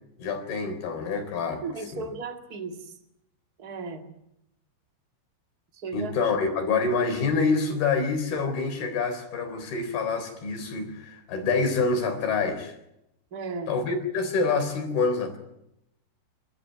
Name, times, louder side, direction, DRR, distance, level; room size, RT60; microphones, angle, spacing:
voice 1, 0.2-1.6 1.9-2.0 5.9-12.8 13.7-15.4, left 4 dB, 55° left, 5 dB, 5.7 m, -26 dB
voice 2, 1.6-3.0 3.6-4.1 5.7-6.2 13.3-13.8, right 4 dB, 85° right, 4 dB, 0.8 m, -35 dB
28.5 x 15.0 x 9.3 m, 0.83 s
omnidirectional pair, 5.8 m